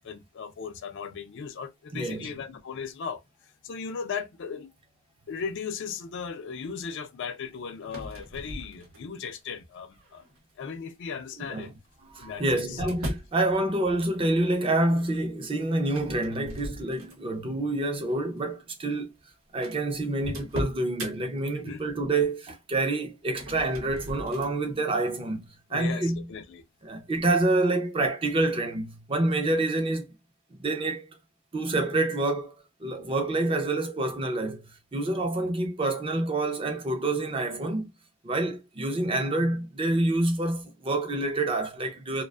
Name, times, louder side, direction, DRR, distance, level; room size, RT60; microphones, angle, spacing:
voice 1, 0.0-3.2 3.6-4.7 5.3-10.3 10.6-11.7 12.2-12.8 21.5-21.8 25.7-26.6, left 6 dB, 55° left, 0.4 m, -37 dB
voice 2, 1.9-2.3 11.4-11.7 12.0-19.1 19.5-25.4 25.7-26.3 26.8-30.1 30.5-31.1 31.5-32.5 32.8-37.9 38.2-42.2, right 2 dB, 25° right, 0.5 m, -27 dB
sound 1, 7.8-9.3 9.9-10.4 11.5-13.4 15.9-17.4 17.9-18.1 18.9-19.0 19.2-19.3 19.6-21.1 23.2-24.5, equal, 60° right, 0.8 m, -38 dB
2.4 x 2.2 x 2.3 m
head